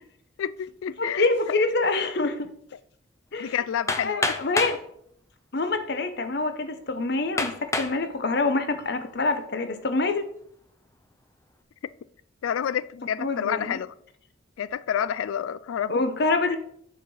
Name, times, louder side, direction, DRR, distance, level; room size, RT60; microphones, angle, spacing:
voice 1, 0.4-1.2 3.4-4.4 12.4-13.9 14.6-16.0, left 9 dB, 85° left, 0.3 m, -29 dB
voice 2, 1.0-2.5 3.3-3.5 4.0-4.8 5.5-10.2 13.2-13.8 15.9-16.6, left 3 dB, 55° left, 0.8 m, -26 dB
Hammer, 3.9-4.8 5.7-5.8 6.4-6.5 7.4-8.0 8.6-9.0, left 2 dB, 15° left, 0.5 m, -28 dB
7.1 x 4.7 x 5.5 m
head